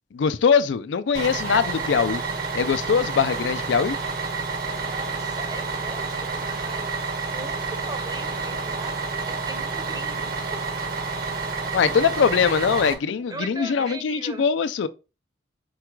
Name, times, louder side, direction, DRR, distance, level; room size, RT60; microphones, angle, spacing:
voice 1, 0.1-2.2 2.5-4.0 11.7-14.9, left 6 dB, 75° left, 0.4 m, -22 dB
Bus, 1.1-12.9, right 4 dB, 55° right, 1.0 m, -29 dB
voice 2, 4.7-7.0 7.3-11.2 13.3-14.5, right 2 dB, 20° right, 0.7 m, -39 dB
4.7 x 2.3 x 4.4 m
head